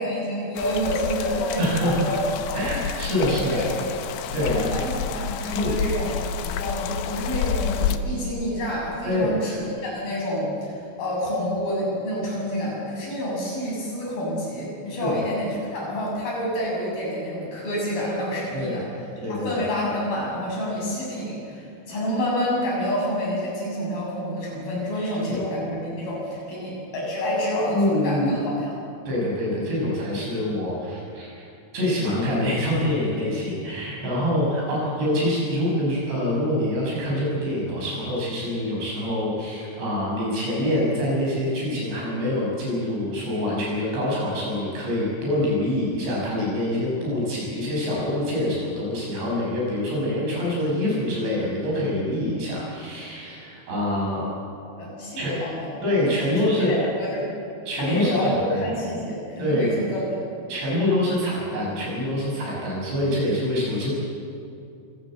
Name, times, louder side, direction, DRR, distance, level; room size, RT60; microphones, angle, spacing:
voice 1, 0.0-2.2 2.5-2.7 3.3-3.9 4.4-18.9 19.3-28.8 54.8-55.8 56.2-57.3 57.7-60.2, equal, 55° left, -4 dB, 9.2 m, -28 dB
sound 1, 0.6-8.0, left 8 dB, 80° left, 3.2 m, -29 dB
voice 2, 1.6-2.1 2.5-3.6 4.3-4.7 5.5-5.7 9.0-9.4 15.0-15.1 18.5-18.8 19.2-19.6 25.0-25.4 27.7-28.3 29.1-31.5 31.7-54.3 55.2-55.3 55.8-56.8 57.7-58.6 59.4-59.7 60.5-64.0, left 1 dB, 90° right, -4 dB, 10.0 m, -25 dB
25.5 x 18.0 x 8.0 m, 2.6 s
omnidirectional pair, 4.9 m